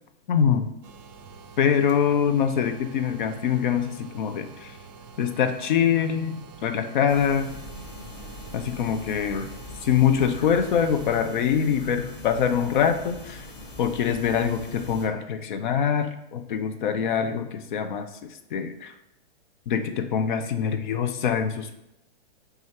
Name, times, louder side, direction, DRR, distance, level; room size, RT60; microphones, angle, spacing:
voice 1, 0.3-0.7 1.6-4.7 5.2-7.5 8.5-9.5 9.8-13.4 13.8-18.1 18.5-18.9 19.7-21.8, left 7 dB, 50° left, 8 dB, 0.5 m, -24 dB
sound 1, 0.8-11.2, right 5 dB, 45° right, 0.4 m, -47 dB
sound 2, 7.1-15.1, left 1 dB, 35° left, 1.0 m, -42 dB
5.9 x 2.4 x 2.9 m, 0.86 s
hypercardioid pair, 165°, 31 cm